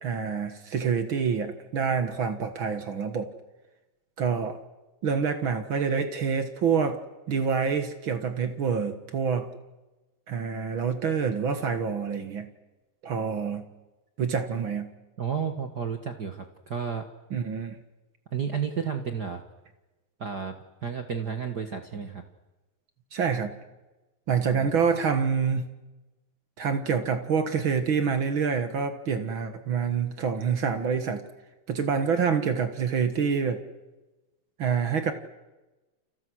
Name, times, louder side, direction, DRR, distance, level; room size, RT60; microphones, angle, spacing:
voice 1, 0.0-3.3 4.2-4.6 5.0-7.0 7.3-9.5 10.3-12.5 13.0-13.6 14.2-14.9 17.3-17.8 23.1-23.5 24.3-25.7 26.6-31.2 31.7-33.6 34.6-35.1, right 6 dB, 50° right, 8 dB, 1.5 m, -27 dB
voice 2, 15.2-17.0 18.3-19.4 20.2-20.5 20.8-22.2 24.5-24.7, right 6 dB, 75° right, 6 dB, 0.9 m, -32 dB
30.0 x 26.5 x 6.4 m, 1.1 s
omnidirectional pair, 4.4 m